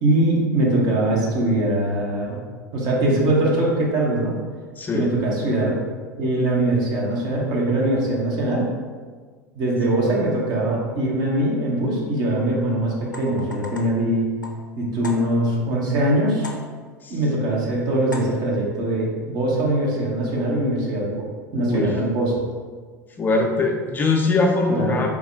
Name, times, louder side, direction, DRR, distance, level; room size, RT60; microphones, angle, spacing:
voice 1, 0.0-2.4 2.7-4.4 4.9-5.8 6.2-8.6 9.6-14.3 14.8-16.5 17.1-21.3 21.5-22.5 24.7-25.0, right 1 dB, 45° right, -4 dB, 0.8 m, -22 dB
sound 1, 13.0-15.7 16.4-17.0 18.1-18.7, left 2 dB, 85° left, 0.4 m, -39 dB
voice 2, 21.5-21.9 23.2-25.1, left 3 dB, 20° left, 1 dB, 0.5 m, -22 dB
3.3 x 2.1 x 3.3 m, 1.5 s
figure-of-eight pair, 80°, 10 cm